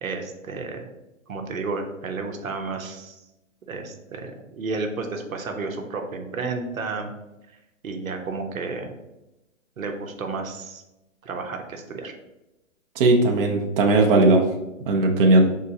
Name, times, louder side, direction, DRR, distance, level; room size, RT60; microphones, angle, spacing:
voice 1, 0.0-0.9 1.3-3.2 3.7-7.1 7.8-8.9 9.8-10.8 11.2-12.1, right 4 dB, 85° right, 3 dB, 1.0 m, -32 dB
voice 2, 13.0-14.4 14.9-15.5, right 2 dB, 45° right, 1 dB, 0.7 m, -17 dB
5.1 x 3.7 x 2.8 m, 0.97 s
hypercardioid pair, 135°, 40 cm